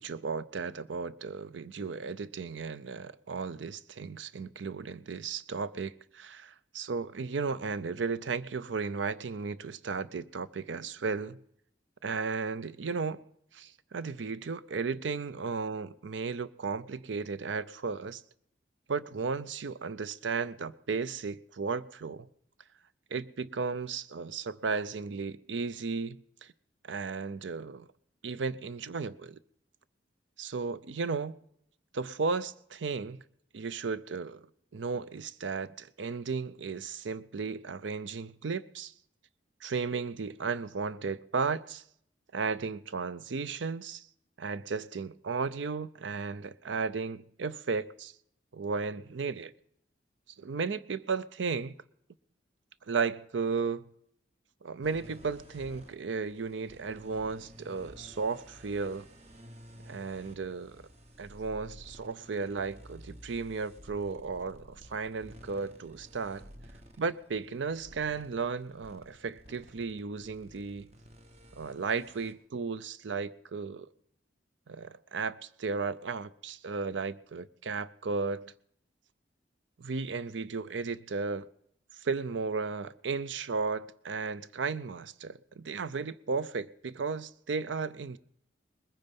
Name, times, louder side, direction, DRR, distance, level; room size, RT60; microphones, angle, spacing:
voice 1, 0.0-11.4 12.0-13.2 13.5-18.2 18.9-22.3 23.1-26.5 26.8-27.9 28.2-29.4 30.4-31.4 31.9-33.2 33.5-34.5 34.7-38.9 39.6-41.8 42.3-44.1 44.4-48.1 48.5-49.5 50.4-51.7 52.9-53.8 54.6-59.1 59.9-60.8 61.2-66.5 67.0-70.9 71.6-73.9 74.7-78.5 79.8-81.5 82.0-88.2, right 4 dB, 85° right, 0.6 m, -34 dB
sound 1, 54.8-72.3, equal, 35° right, 1.3 m, -53 dB
20.5 x 9.6 x 5.3 m
head